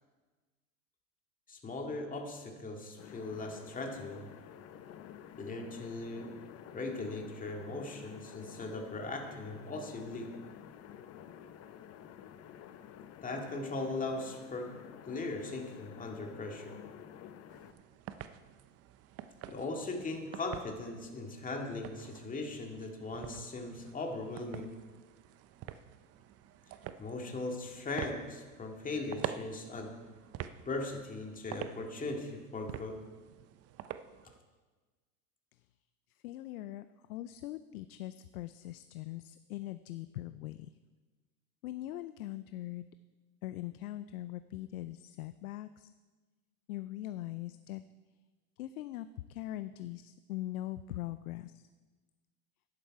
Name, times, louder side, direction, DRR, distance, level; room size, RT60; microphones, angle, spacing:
voice 1, 1.5-4.3 5.3-6.4 6.7-10.3 13.2-14.8 15.0-16.8 19.5-24.8 27.0-30.0 30.7-33.0, left 2 dB, 20° left, 2 dB, 2.0 m, -39 dB
sound 1, 3.0-17.7, left 9 dB, 35° left, 0.8 m, -51 dB
sound 2, 17.5-34.4, right 11 dB, 35° right, 0.6 m, -47 dB
voice 2, 36.1-40.7 41.6-42.9 43.4-45.9 46.7-47.8 48.6-51.6, left 15 dB, 80° left, 13 dB, 0.6 m, -41 dB
11.5 x 10.0 x 4.7 m, 1.3 s
hypercardioid pair, 95°, 43 cm